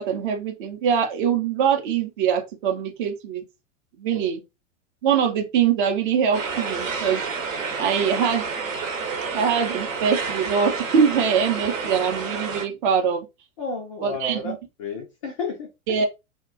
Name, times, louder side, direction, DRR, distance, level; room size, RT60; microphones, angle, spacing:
voice 1, 0.0-3.4 4.0-4.4 5.0-7.2 7.8-8.4 9.3-13.3 14.0-14.6 15.9-16.1, right 7 dB, 35° right, 0.6 m, -23 dB
sound 1, 6.3-12.7, right 4 dB, 65° right, 0.9 m, -29 dB
voice 2, 13.6-14.5 14.8-15.7, left 3 dB, 25° left, 0.3 m, -31 dB
2.2 x 2.1 x 2.5 m
figure-of-eight pair, 95°, 42 cm